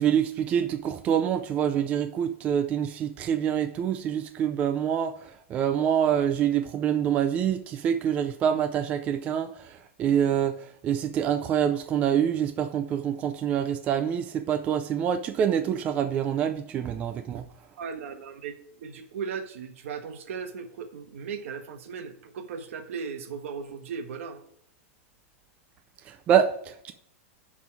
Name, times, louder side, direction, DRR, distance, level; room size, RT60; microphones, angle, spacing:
voice 1, 0.0-5.2 5.5-9.5 10.0-10.6 10.8-17.5 26.3-26.9, right 9 dB, 20° right, 0.4 m, -26 dB
voice 2, 17.8-18.5 18.8-24.4, right 6 dB, 70° right, 1.3 m, -37 dB
10.5 x 3.7 x 5.9 m
supercardioid pair, 170°, 8 cm